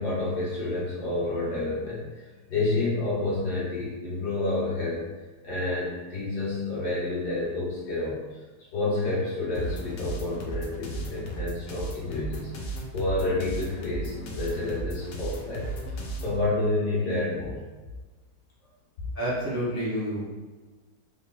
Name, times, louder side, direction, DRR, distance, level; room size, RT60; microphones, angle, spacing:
voice 1, 0.0-2.0 2.5-5.0 5.4-8.2 8.7-12.5 12.9-15.7 16.2-17.6, left 2 dB, 70° left, -8 dB, 1.9 m, -29 dB
sound 1, 9.5-16.4, right 1 dB, 90° left, 0.5 m, -35 dB
voice 2, 19.1-20.3, equal, 20° right, -9 dB, 0.5 m, -29 dB
4.1 x 3.6 x 2.2 m, 1.3 s
omnidirectional pair, 1.8 m